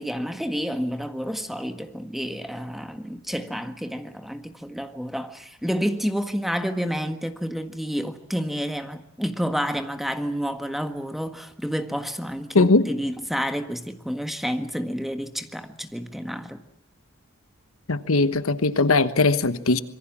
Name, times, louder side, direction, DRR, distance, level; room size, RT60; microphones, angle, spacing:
voice 1, 0.0-16.6, equal, ahead, 1.6 m, -29 dB
voice 2, 12.5-12.9 17.9-19.8, left 3 dB, 75° left, 1.2 m, -20 dB
26.0 x 23.0 x 7.5 m
head